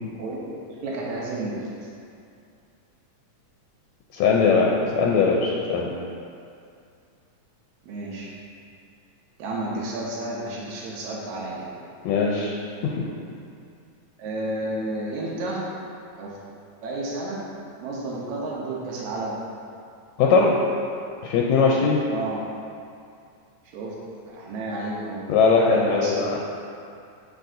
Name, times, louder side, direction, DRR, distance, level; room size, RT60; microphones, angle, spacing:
voice 1, 0.7-1.9 7.8-8.3 9.4-11.7 14.2-15.6 16.2-16.4 16.8-17.4 17.8-19.4 22.1-22.4 23.7-24.0 24.3-25.2 25.7-26.2, right 2 dB, 85° right, -4 dB, 2.2 m, -31 dB
voice 2, 4.1-4.7 5.0-5.9 12.1-12.5 20.2-20.5 21.2-22.0 25.3-26.4, left 5 dB, 80° left, -2 dB, 1.9 m, -20 dB
11.0 x 4.3 x 2.6 m, 2.4 s
omnidirectional pair, 3.3 m